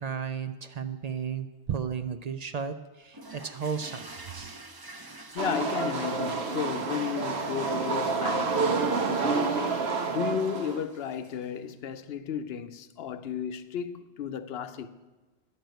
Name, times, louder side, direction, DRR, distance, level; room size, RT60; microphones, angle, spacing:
voice 1, 0.0-4.6, right 7 dB, 50° right, 0.5 m, -34 dB
sound 1, 3.1-11.6, right 2 dB, 25° right, 0.8 m, -48 dB
voice 2, 5.3-14.9, left 8 dB, 70° left, 0.9 m, -34 dB
sound 2, 5.4-10.8, right 4 dB, 80° right, 1.2 m, -28 dB
10.0 x 6.7 x 9.0 m
omnidirectional pair, 1.1 m